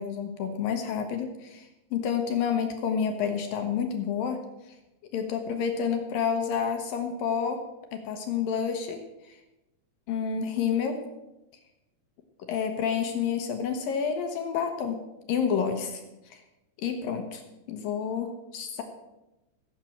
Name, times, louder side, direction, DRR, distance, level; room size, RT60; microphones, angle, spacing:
voice 1, 0.0-4.4 5.1-7.6 7.9-9.0 9.3-9.4 10.1-11.0 12.5-15.0 15.3-16.0 16.3-16.4 16.8-17.4 17.7-18.8, left 7 dB, 70° left, 5 dB, 2.4 m, -29 dB
16.0 x 7.5 x 7.2 m, 0.95 s
omnidirectional pair, 5.1 m